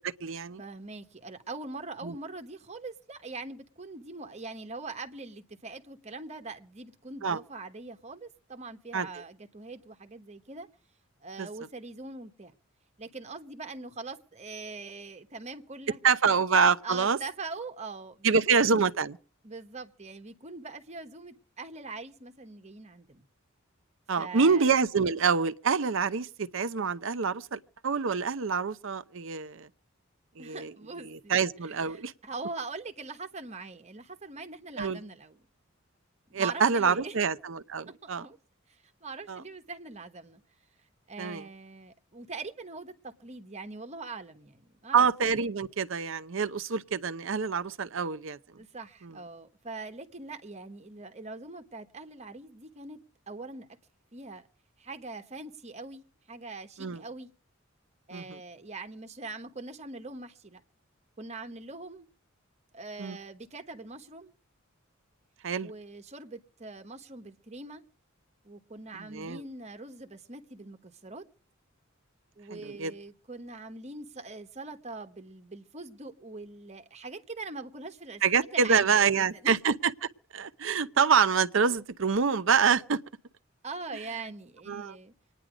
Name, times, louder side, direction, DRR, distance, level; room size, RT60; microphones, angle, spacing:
voice 1, 0.0-0.6 2.0-2.1 7.2-7.4 8.9-9.1 11.4-11.5 16.0-17.2 18.2-19.2 24.1-29.7 30.4-30.7 31.0-32.1 34.8-35.0 36.3-38.3 39.3-39.4 41.2-41.4 44.9-48.4 49.0-49.1 56.8-57.0 58.1-58.4 63.0-63.2 65.4-65.7 69.0-69.4 72.5-72.9 78.2-83.0 84.7-85.0, right 5 dB, 65° right, 0.7 m, -26 dB
voice 2, 0.6-10.7 11.2-12.5 13.0-16.0 16.2-16.3 16.8-18.6 19.4-23.3 24.2-24.7 30.4-31.3 31.6-35.4 36.3-37.1 38.0-38.4 39.0-40.4 41.1-45.1 48.6-53.0 53.3-53.7 54.1-54.5 54.8-57.3 58.1-60.6 61.2-62.1 62.7-64.3 65.6-67.8 68.4-71.2 72.4-78.2 78.5-79.5 83.6-85.1, right 3 dB, 35° right, 1.2 m, -42 dB
25.5 x 10.0 x 5.0 m
head